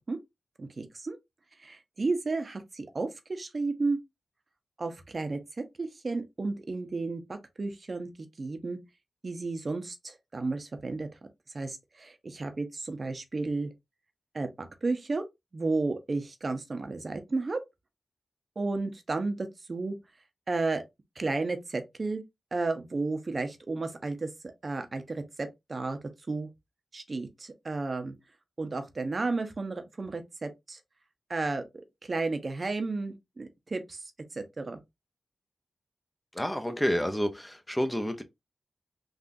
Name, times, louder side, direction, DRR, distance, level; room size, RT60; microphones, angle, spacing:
voice 1, 0.6-1.2 1.6-4.0 4.8-5.4 5.8-8.1 8.4-8.8 9.2-11.1 11.5-13.7 14.3-15.2 15.5-17.6 18.6-20.0 20.5-20.8 21.2-22.2 22.5-26.0 26.3-26.5 26.9-28.1 28.6-30.8 31.3-31.6 32.0-34.8, right 3 dB, 50° right, 0.6 m, -33 dB
voice 2, 36.3-38.2, equal, 10° left, 0.5 m, -29 dB
3.6 x 2.4 x 2.6 m
cardioid pair, 65°, 0 cm